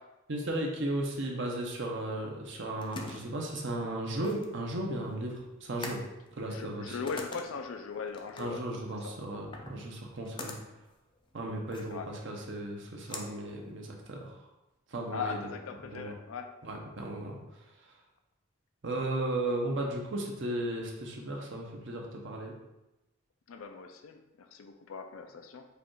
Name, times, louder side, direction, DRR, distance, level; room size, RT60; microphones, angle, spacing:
voice 1, 0.3-6.0 6.4-7.0 8.4-10.5 11.3-14.3 14.9-15.4 15.9-16.1 16.6-17.4 18.8-22.5, right 1 dB, 60° right, 0 dB, 0.8 m, -35 dB
sound 1, 2.4-14.3, left 3 dB, 25° left, 0.4 m, -47 dB
voice 2, 6.5-8.6 9.0-9.1 11.9-12.1 15.1-16.5 23.5-25.6, left 5 dB, 85° left, 6 dB, 0.4 m, -39 dB
5.0 x 2.4 x 4.5 m, 0.99 s
head